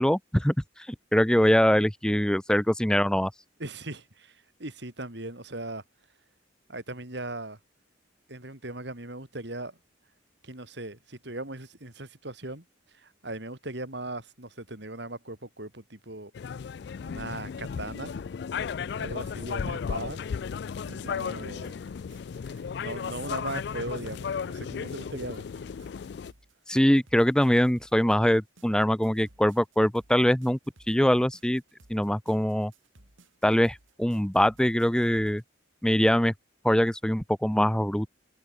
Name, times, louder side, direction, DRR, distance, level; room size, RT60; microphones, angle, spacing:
voice 1, 0.0-3.3 26.7-30.6 30.9-31.6 31.9-32.7 33.4-35.4 35.8-36.3 36.6-38.1, equal, 5° left, 0.6 m, -23 dB
voice 2, 3.6-5.8 6.7-7.6 8.3-9.8 10.4-16.3 17.0-18.1 18.9-20.2 20.9-21.8 22.4-25.5, right 2 dB, 60° right, 3.4 m, -39 dB
sound 1, 16.3-26.3, left 6 dB, 55° left, 0.3 m, -35 dB
sound 2, 20.7-35.4, right 2 dB, 80° right, 4.0 m, -59 dB
open air
head